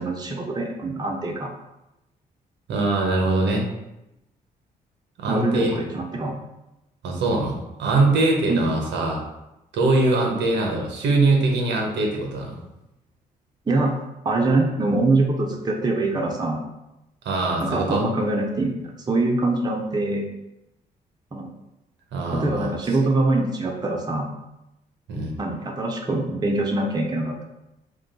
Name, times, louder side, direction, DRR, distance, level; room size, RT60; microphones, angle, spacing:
voice 1, 0.0-1.5 5.3-6.3 8.5-8.6 13.7-13.9 14.2-16.6 17.6-20.3 21.3-21.5 22.3-24.3 25.4-27.4, right 2 dB, 20° right, 1 dB, 0.5 m, -24 dB
voice 2, 2.7-3.6 5.2-5.8 7.0-9.2 9.7-12.6 17.2-18.1 22.1-22.7 25.1-25.3, right 2 dB, 60° right, 1 dB, 0.7 m, -22 dB
2.5 x 2.2 x 3.9 m, 0.92 s
hypercardioid pair, 40°, 21 cm